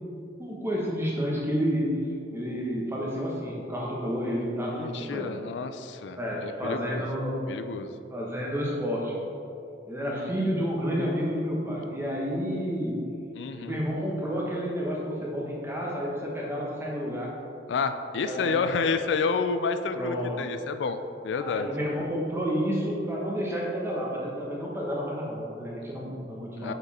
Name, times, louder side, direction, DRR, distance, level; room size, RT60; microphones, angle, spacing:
voice 1, 0.4-1.9 2.3-5.4 6.2-7.4 8.1-9.2 9.9-13.0 13.5-17.3 18.2-18.5 19.9-20.4 21.4-26.7, equal, 15° right, -3 dB, 1.2 m, -30 dB
voice 2, 4.7-7.0 7.5-7.9 10.1-10.5 13.4-13.8 17.7-21.0 21.2-21.7 26.6-26.7, left 5 dB, 80° left, 9 dB, 0.4 m, -30 dB
6.3 x 5.3 x 4.2 m, 2.7 s
head